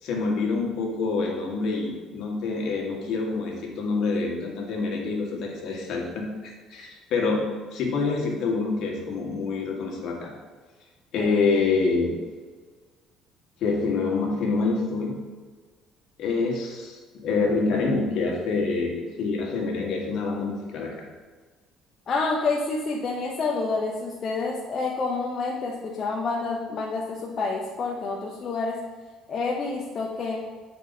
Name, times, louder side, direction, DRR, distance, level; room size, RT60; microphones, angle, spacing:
voice 1, 0.0-7.4 7.7-10.3 11.1-12.1 13.6-15.1 16.2-21.1, left 4 dB, 65° left, 0 dB, 1.7 m, -26 dB
voice 2, 22.1-28.8 29.3-30.4, left 3 dB, 40° left, -2 dB, 0.8 m, -28 dB
8.2 x 4.6 x 4.1 m, 1.5 s
cardioid pair, 120°, 0 cm